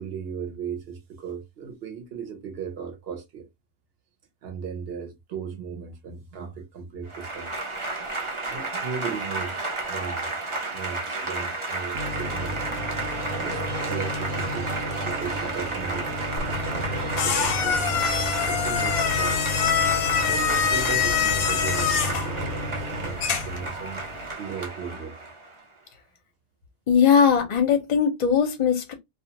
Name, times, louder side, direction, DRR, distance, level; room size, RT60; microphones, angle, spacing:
voice 1, 0.0-3.5 4.4-7.5 8.5-9.6 9.9-10.3 10.7-12.6 13.4-18.1 18.4-19.4 20.3-24.0 24.4-25.2, right 6 dB, 55° right, 0.8 m, -36 dB
Applause / Crowd, 7.1-25.6, right 2 dB, 35° right, 0.4 m, -32 dB
sound 1, 11.9-24.3, equal, 90° right, 1.1 m, -33 dB
sound 2, 16.4-23.7, left 7 dB, 90° left, 1.1 m, -25 dB
voice 2, 26.9-28.9, left 7 dB, 40° left, 0.6 m, -20 dB
2.4 x 2.3 x 2.8 m
omnidirectional pair, 1.5 m